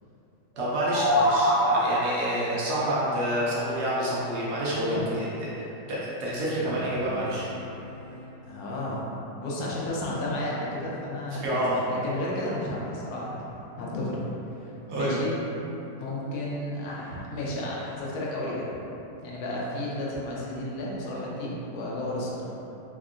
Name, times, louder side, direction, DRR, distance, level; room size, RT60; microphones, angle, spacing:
sound 1, 0.6-2.4, equal, 55° right, 1.7 m, -24 dB
voice 1, 0.6-4.8 5.2-5.5 5.9-7.5 11.4-11.8 14.9-15.3, right 1 dB, 70° right, -8 dB, 1.1 m, -28 dB
voice 2, 4.7-5.1 8.4-14.2 14.6-15.4 16.0-18.7 19.2-22.5, left 1 dB, 70° left, -5 dB, 1.0 m, -32 dB
sound 2, 6.5-11.3, equal, 50° left, 0.9 m, -45 dB
3.5 x 2.1 x 2.4 m, 2.9 s
omnidirectional pair, 1.8 m